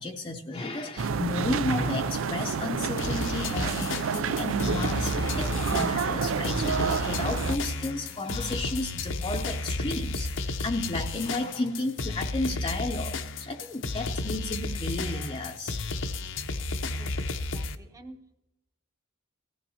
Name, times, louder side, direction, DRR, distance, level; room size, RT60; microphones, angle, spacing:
voice 1, 0.0-15.8, left 2 dB, 25° left, 2 dB, 0.6 m, -33 dB
sound 1, 1.0-7.6, right 5 dB, 75° right, 0.4 m, -29 dB
sound 2, 3.0-17.8, left 3 dB, 65° left, 0.7 m, -32 dB
voice 2, 17.0-18.4, right 1 dB, 15° right, 5 dB, 1.0 m, -50 dB
19.0 x 15.0 x 2.8 m, 0.88 s
head